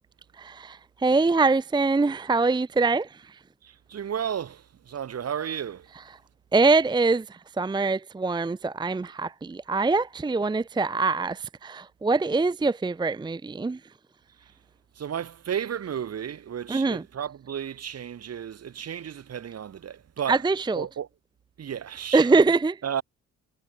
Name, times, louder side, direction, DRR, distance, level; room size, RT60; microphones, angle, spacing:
voice 1, 0.4-3.4 6.5-13.8 16.7-17.0 20.3-20.9 22.1-22.8, right 3 dB, 15° right, 0.6 m, -24 dB
voice 2, 3.6-5.9 15.0-20.4 20.8-21.1 21.6-22.2 22.8-23.0, right 8 dB, 55° right, 3.7 m, -33 dB
cardioid pair, 90°, 30 cm